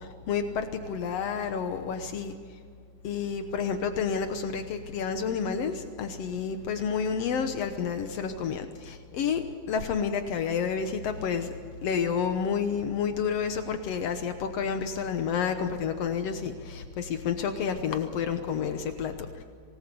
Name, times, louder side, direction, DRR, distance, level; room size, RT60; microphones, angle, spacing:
voice 1, 0.0-2.3 3.0-11.5 11.8-19.4, left 6 dB, 85° left, 7 dB, 1.4 m, -30 dB
26.0 x 19.5 x 6.9 m, 2.3 s
omnidirectional pair, 4.4 m